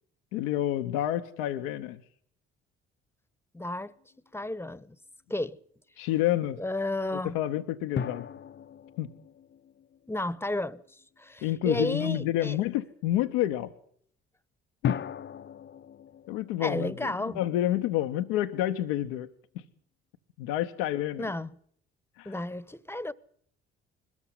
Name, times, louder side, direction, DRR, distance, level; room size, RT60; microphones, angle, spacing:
voice 1, 0.3-2.0 6.0-6.6 7.1-8.3 9.0-9.1 11.4-13.7 14.8-15.0 16.3-19.3 19.5-19.6 20.4-21.3 22.2-22.3, left 13 dB, 80° left, 0.9 m, -29 dB
voice 2, 3.5-3.9 4.3-5.0 5.3-5.6 6.6-7.4 10.1-12.6 16.6-17.4 21.2-21.6 22.2-23.1, left 1 dB, 10° left, 1.1 m, -32 dB
sound 1, 3.6-4.3 8.0-10.8 14.8-18.1, left 7 dB, 40° left, 0.8 m, -38 dB
21.0 x 13.5 x 9.7 m
hypercardioid pair, 50°, 29 cm